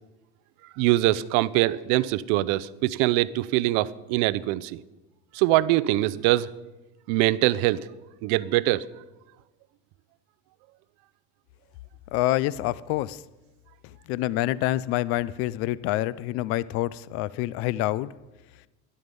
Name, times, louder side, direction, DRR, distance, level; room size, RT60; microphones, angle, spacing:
voice 1, 0.8-4.8 5.3-6.5 7.1-7.9 8.2-8.9, right 16 dB, 60° right, 0.5 m, -23 dB
voice 2, 12.1-13.2 14.1-18.1, left 16 dB, 45° left, 0.4 m, -27 dB
13.0 x 11.5 x 5.3 m
cardioid pair, 170°, 32 cm